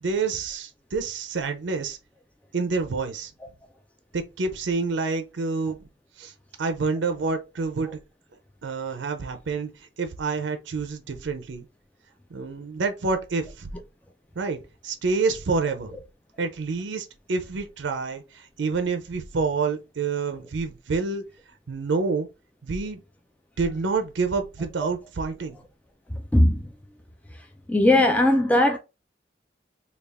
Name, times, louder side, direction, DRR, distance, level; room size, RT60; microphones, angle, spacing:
voice 1, 0.0-2.0 2.5-3.3 4.1-5.8 6.2-8.0 8.6-11.6 12.3-13.7 14.4-16.0 16.4-21.2 21.7-22.3 22.6-23.0 23.6-25.6, right 4 dB, 80° right, 0.5 m, -28 dB
voice 2, 26.3-26.7 27.7-28.8, left 1 dB, 10° left, 0.4 m, -18 dB
3.4 x 2.3 x 3.4 m
head